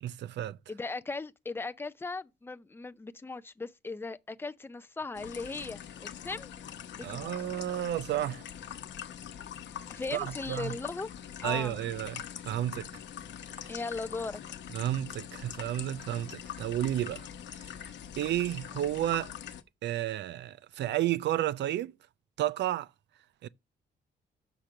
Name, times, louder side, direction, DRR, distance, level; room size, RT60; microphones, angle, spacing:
voice 1, 0.0-0.6 7.0-8.4 10.1-10.8 11.4-12.9 13.6-13.7 14.7-17.3 17.5-17.7 18.2-19.3 19.8-21.9 22.4-22.9 23.4-23.5, right 13 dB, 70° right, 0.4 m, -32 dB
voice 2, 0.7-6.5 6.9-7.3 9.9-11.1 11.4-11.8 13.7-14.6, left 3 dB, 10° left, 0.4 m, -38 dB
sound 1, 5.1-19.6, left 9 dB, 70° left, 0.9 m, -43 dB
6.5 x 5.9 x 5.9 m
wide cardioid pair, 155°, 19 cm